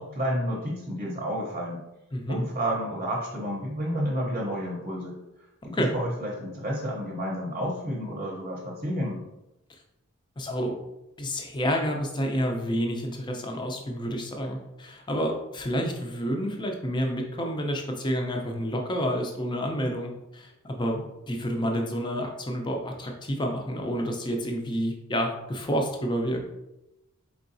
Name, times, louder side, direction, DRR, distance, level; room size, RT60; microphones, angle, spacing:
voice 1, 0.0-1.8 2.3-5.2 5.7-9.2, equal, 35° right, -2 dB, 0.8 m, -30 dB
voice 2, 10.4-10.8 11.2-26.4, equal, 20° left, 2 dB, 0.6 m, -29 dB
4.6 x 3.8 x 2.6 m, 0.94 s
head